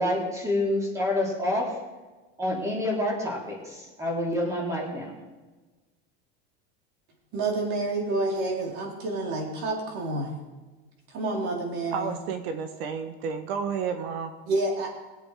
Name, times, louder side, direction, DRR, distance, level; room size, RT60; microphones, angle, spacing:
voice 1, 0.0-1.7 2.4-5.1, left 1 dB, 10° right, -2 dB, 3.6 m, -27 dB
voice 2, 7.3-10.4 11.1-12.1 14.5-14.9, right 2 dB, 45° right, 0 dB, 4.0 m, -29 dB
voice 3, 11.9-14.3, right 6 dB, 80° right, 7 dB, 1.5 m, -31 dB
21.5 x 8.2 x 5.0 m, 1.2 s
supercardioid pair, 155°, 30 cm